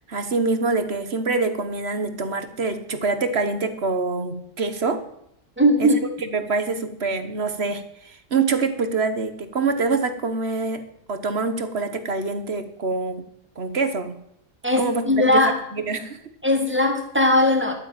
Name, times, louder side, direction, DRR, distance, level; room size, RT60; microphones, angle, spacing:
voice 1, 0.1-5.0 5.8-5.9 6.3-10.8 11.1-13.2 13.6-14.2 14.8-15.0 15.3-15.4 15.7-16.2, right 4 dB, 50° right, 10 dB, 1.5 m, -25 dB
voice 2, 5.6-6.0 14.6-15.6 16.4-17.7, left 1 dB, 10° right, 4 dB, 2.2 m, -19 dB
12.0 x 9.4 x 9.0 m, 0.74 s
omnidirectional pair, 1.4 m